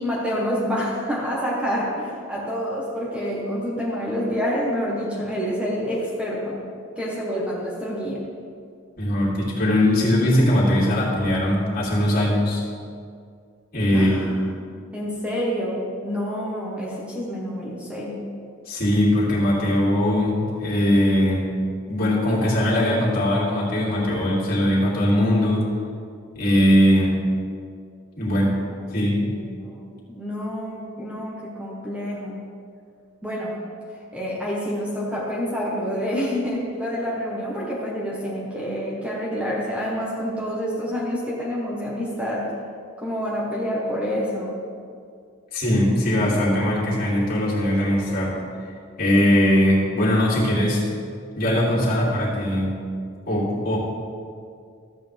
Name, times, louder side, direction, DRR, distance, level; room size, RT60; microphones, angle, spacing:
voice 1, 0.0-6.6 7.0-8.2 13.9-14.4 14.9-18.2 29.0-32.4 33.2-33.6 34.1-42.5 43.0-44.6, equal, 5° right, -5 dB, 1.3 m, -28 dB
voice 2, 9.0-12.6 13.7-14.3 18.7-21.5 21.9-25.6 26.3-27.2 28.1-28.6 28.9-29.3 45.5-48.4 49.0-50.8 51.4-52.8 53.3-53.8, left 1 dB, 45° left, -7 dB, 2.8 m, -20 dB
13.5 x 8.5 x 3.5 m, 2.3 s
head